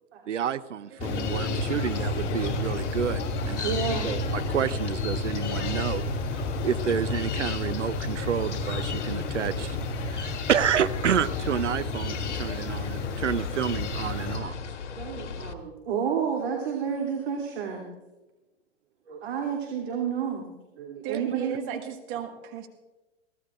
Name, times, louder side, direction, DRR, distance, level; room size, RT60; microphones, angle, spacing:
voice 1, 0.3-3.2 3.5-3.7 4.0-6.0 6.6-9.8 10.1-14.6, right 8 dB, 90° right, 15 dB, 0.8 m, -29 dB
sound 1, 1.0-15.5, left 6 dB, 75° left, 1.7 m, -37 dB
sound 2, 1.0-14.4, left 2 dB, 30° left, 3.4 m, -31 dB
voice 2, 1.1-1.8 2.2-2.3 3.6-4.1 15.0-17.9 19.0-20.5 20.7-21.8 22.1-22.2, right 7 dB, 65° right, 0 dB, 2.9 m, -31 dB
voice 3, 21.0-22.7, right 9 dB, 45° right, 5 dB, 1.8 m, -36 dB
23.0 x 16.5 x 2.5 m, 1.1 s
hypercardioid pair, 125°, 35 cm